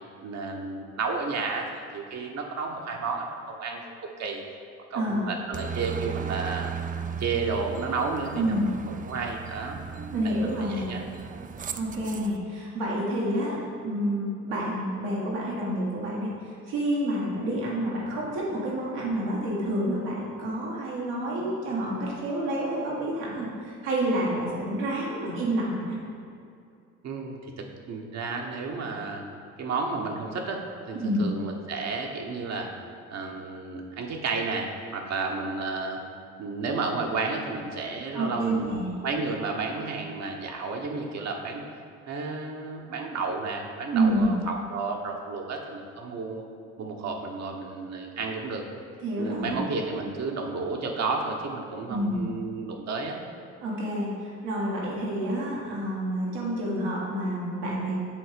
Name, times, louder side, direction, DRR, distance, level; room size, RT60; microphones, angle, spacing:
voice 1, 0.2-4.4 4.9-6.7 7.2-11.0 27.0-29.2 29.6-32.7 33.1-36.0 36.4-41.6 42.1-46.4 46.8-48.6 49.2-53.2, right 4 dB, 60° right, 1 dB, 1.1 m, -32 dB
voice 2, 4.9-5.2 8.3-8.6 10.1-10.9 11.7-26.0 31.0-31.2 38.1-38.9 43.9-44.3 49.0-49.5 51.9-52.2 53.6-58.0, right 1 dB, 90° right, -4 dB, 1.6 m, -28 dB
Aircraft, 5.5-12.4, right 7 dB, 25° right, 0.4 m, -36 dB
7.6 x 3.6 x 5.1 m, 2.5 s
supercardioid pair, 65°, 31 cm